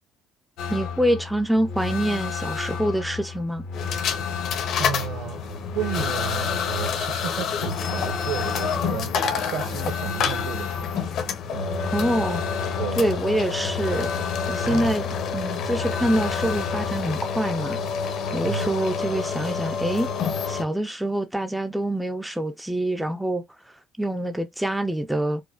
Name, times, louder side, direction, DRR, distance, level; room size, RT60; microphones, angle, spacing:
sound 1, 0.6-17.2, left 6 dB, 85° left, 0.9 m, -32 dB
voice 1, 0.7-3.6 11.9-12.4 13.0-14.1 14.5-15.1 15.3-17.8 18.3-20.1 20.5-23.4 24.0-25.4, right 1 dB, 5° right, 0.3 m, -25 dB
sound 2, 3.7-20.6, left 6 dB, 50° left, 0.7 m, -29 dB
voice 2, 4.8-11.1 11.5-11.9 12.8-13.1 14.6-15.0 18.4-18.7, right 9 dB, 70° right, 0.9 m, -33 dB
4.7 x 2.1 x 2.3 m
cardioid pair, 175°, 0 cm